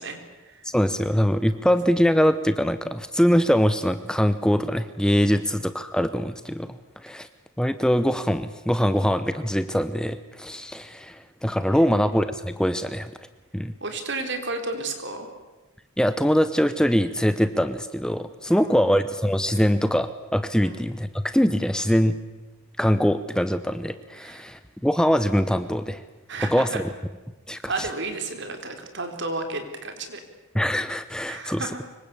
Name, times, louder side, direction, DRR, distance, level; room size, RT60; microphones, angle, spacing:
voice 1, 0.0-0.6 5.4-5.5 11.7-11.9 13.8-15.3 18.5-18.9 20.6-20.8 24.2-24.5 26.3-26.8 27.7-30.2 31.3-31.8, right 3 dB, 60° right, 6 dB, 3.9 m, -32 dB
voice 2, 0.7-6.7 7.0-7.3 7.6-13.1 13.5-13.8 16.0-22.2 22.8-26.0 26.4-26.8 27.5-27.9 30.5-31.9, equal, 5° left, 11 dB, 0.8 m, -23 dB
25.5 x 23.0 x 8.6 m, 1.1 s
head